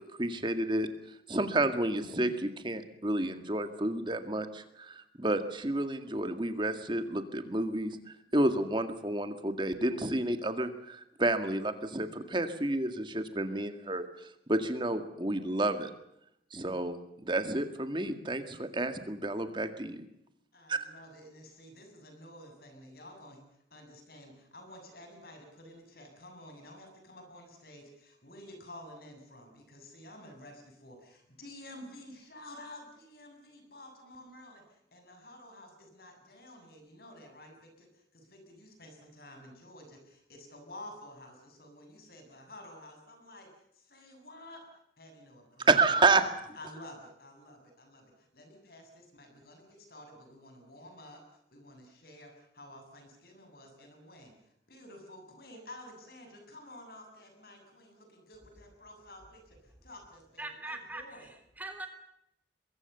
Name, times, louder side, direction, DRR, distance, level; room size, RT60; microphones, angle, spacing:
voice 1, 0.2-0.9 1.3-8.0 8.3-15.9 16.5-20.1 20.7-20.8 45.7-46.2, right 2 dB, 25° right, 8 dB, 2.0 m, -30 dB
voice 2, 20.5-23.4 23.7-44.7 45.0-45.7 46.0-46.2 46.5-51.2 51.5-54.3 54.7-61.3, left 1 dB, 55° left, 4 dB, 7.6 m, -51 dB
voice 3, 60.4-61.9, right 2 dB, 10° right, 7 dB, 3.1 m, -42 dB
23.0 x 22.5 x 7.0 m, 0.79 s
head